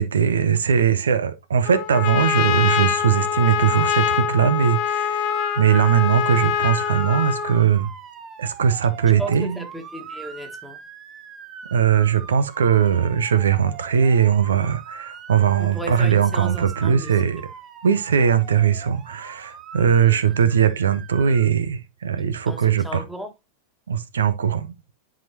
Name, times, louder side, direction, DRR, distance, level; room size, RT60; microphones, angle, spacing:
voice 1, 0.0-5.3 5.6-7.9 8.4-9.6 11.7-17.4 17.8-23.0 23.9-24.7, right 8 dB, 65° right, 0.6 m, -20 dB
Trumpet, 1.6-7.6, left 9 dB, 45° left, 0.8 m, -24 dB
Motor vehicle (road) / Siren, 5.2-21.5, right 6 dB, 30° right, 1.1 m, -41 dB
voice 2, 9.2-10.8 15.6-17.2 20.0-20.2 22.5-23.3, right 2 dB, ahead, 1.7 m, -34 dB
10.5 x 5.1 x 2.7 m
figure-of-eight pair, 90°, 0 cm